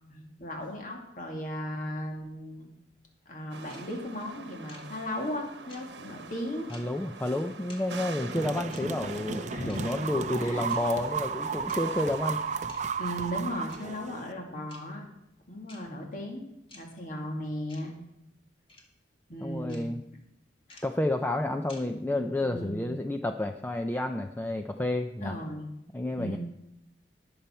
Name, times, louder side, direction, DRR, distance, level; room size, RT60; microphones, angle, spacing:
voice 1, 0.1-2.7 3.3-6.7 9.5-9.8 10.1-10.6 13.0-15.0 15.5-17.9 19.3-19.9 20.7-20.8 21.8-23.0 25.2-25.7 26.2-26.4, equal, 45° left, 1 dB, 2.2 m, -37 dB
sound 1, 3.5-12.7, right 4 dB, 75° right, 1.1 m, -45 dB
sound 2, 3.7-3.8 4.7-4.8 5.7-5.8 6.7-6.8 7.7-7.8 8.7-8.8 9.7-9.8 10.7-10.8 11.7-11.8 12.7-12.8 13.7-13.8 14.7-14.8 15.7-15.8 16.7-16.8 17.7-17.8 18.7-18.8 19.7-19.8 20.7-20.8 21.7-21.8, left 2 dB, 30° left, 2.1 m, -50 dB
voice 2, 6.7-12.4 19.4-20.0 20.8-25.4 25.9-26.4, left 1 dB, 10° left, 6 dB, 0.4 m, -30 dB
sound 3, 8.3-14.3, right 5 dB, 40° right, 0.6 m, -34 dB
19.5 x 7.0 x 4.4 m, 0.87 s
head